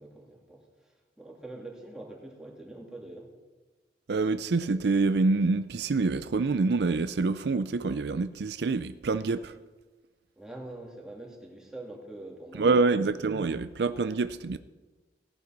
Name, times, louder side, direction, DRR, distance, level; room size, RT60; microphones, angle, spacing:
voice 1, 0.0-3.3 10.4-13.3, right 2 dB, 5° right, 2.8 m, -45 dB
voice 2, 4.1-9.5 12.6-14.6, right 3 dB, 70° right, 0.5 m, -26 dB
17.0 x 10.5 x 5.9 m
head